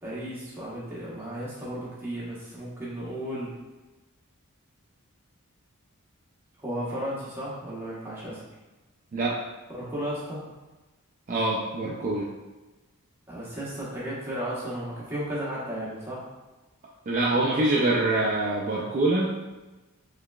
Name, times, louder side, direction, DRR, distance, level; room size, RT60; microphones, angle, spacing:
voice 1, 0.0-3.5 6.6-8.4 9.7-10.4 13.3-16.2, equal, 10° right, -8 dB, 1.1 m, -34 dB
voice 2, 11.3-12.3 17.1-19.3, right 2 dB, 35° right, -4 dB, 0.4 m, -25 dB
3.8 x 3.2 x 2.3 m, 1.1 s
head